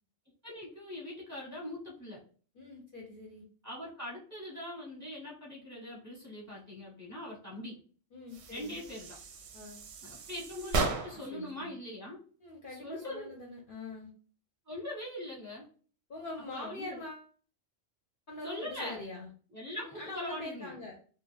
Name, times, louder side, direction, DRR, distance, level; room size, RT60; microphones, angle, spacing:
voice 1, 0.4-2.2 3.6-7.8 8.5-9.2 10.0-12.2 12.7-13.3 14.7-15.7 16.5-17.0 18.4-19.0 19.5-20.8, left 1 dB, 15° right, -4 dB, 0.8 m, -42 dB
voice 2, 2.5-3.4 8.1-8.8 9.5-9.9 11.3-11.7 12.4-14.1 16.1-17.3 18.3-19.3 19.8-21.0, left 2 dB, 55° left, -1 dB, 0.6 m, -43 dB
sound 1, 8.3-11.4, right 3 dB, 65° right, 0.8 m, -36 dB
2.5 x 2.3 x 3.2 m, 0.41 s
omnidirectional pair, 1.3 m